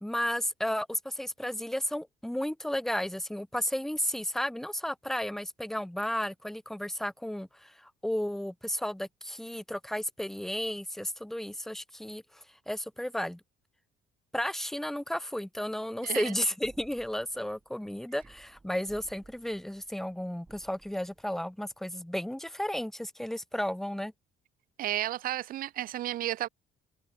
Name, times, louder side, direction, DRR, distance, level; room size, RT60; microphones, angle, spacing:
voice 1, 0.0-13.4 14.3-24.1, left 1 dB, ahead, 0.7 m, -33 dB
voice 2, 16.0-16.3 24.8-26.5, right 14 dB, 55° right, 0.5 m, -32 dB
sound 1, 16.6-22.2 22.4-22.8, right 3 dB, 15° right, 4.6 m, -59 dB
cardioid pair, 110°, 17 cm